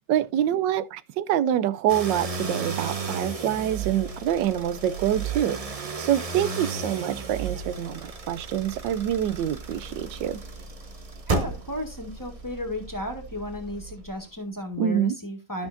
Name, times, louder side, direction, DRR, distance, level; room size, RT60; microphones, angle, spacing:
voice 1, 0.1-5.6 6.0-10.4 14.8-15.1, right 10 dB, 85° right, 1.3 m, -26 dB
sound 1, 1.9-14.3, right 4 dB, 40° right, 0.4 m, -34 dB
voice 2, 11.3-15.7, left 1 dB, 10° left, 1.7 m, -34 dB
13.0 x 6.2 x 2.6 m
omnidirectional pair, 1.9 m